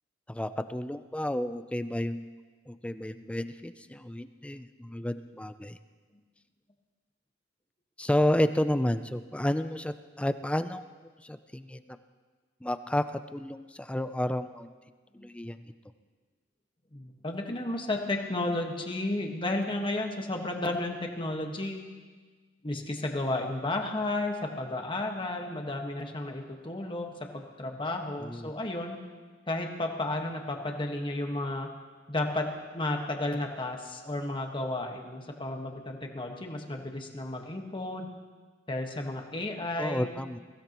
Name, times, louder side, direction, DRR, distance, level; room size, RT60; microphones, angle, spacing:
voice 1, 0.3-2.2 2.7-5.8 8.0-10.8 11.2-12.0 12.6-14.7 15.2-15.6 28.2-28.5 39.8-40.4, left 1 dB, 5° left, 10 dB, 0.4 m, -31 dB
voice 2, 16.9-21.8 22.6-29.0 29.5-31.7 32.1-32.4 32.7-38.1 38.7-40.1, left 2 dB, 25° left, 2 dB, 1.4 m, -33 dB
22.0 x 16.0 x 3.0 m, 1.4 s
head